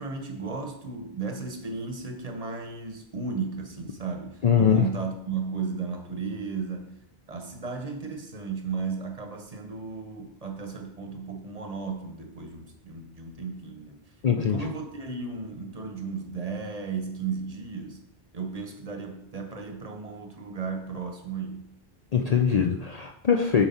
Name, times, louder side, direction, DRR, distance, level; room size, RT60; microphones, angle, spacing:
voice 1, 0.0-7.0 7.3-14.0 14.4-18.0 18.3-21.8, right 5 dB, 40° right, 4 dB, 0.9 m, -34 dB
voice 2, 4.4-4.9 14.2-14.7 22.1-23.6, left 7 dB, 50° left, 3 dB, 0.5 m, -22 dB
7.3 x 4.7 x 4.2 m, 0.79 s
omnidirectional pair, 1.1 m